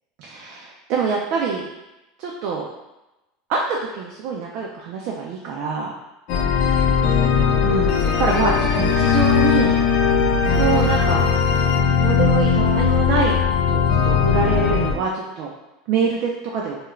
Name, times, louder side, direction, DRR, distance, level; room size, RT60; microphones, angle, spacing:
voice 1, 0.2-1.7 2.2-2.7 3.5-6.0 7.6-9.7 10.6-11.3 12.0-15.5 15.9-16.8, right 5 dB, 60° right, -2 dB, 0.3 m, -25 dB
sound 1, 6.3-14.9, left 6 dB, 60° left, 0.4 m, -18 dB
2.4 x 2.1 x 3.0 m, 0.98 s
supercardioid pair, 130°, 0 cm